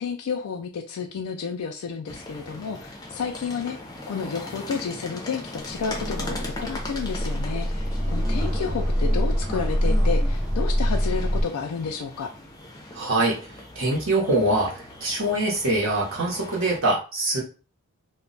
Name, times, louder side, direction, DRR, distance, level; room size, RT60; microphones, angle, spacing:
voice 1, 0.0-3.8 4.1-12.3, left 5 dB, 90° left, 3 dB, 0.4 m, -31 dB
sound 1, 2.1-16.8, left 1 dB, 20° left, 0.5 m, -39 dB
sound 2, 5.6-11.4, equal, 15° right, 1.0 m, -25 dB
voice 2, 12.9-17.4, right 2 dB, 60° right, -3 dB, 0.8 m, -24 dB
2.2 x 2.1 x 3.8 m, 0.35 s
head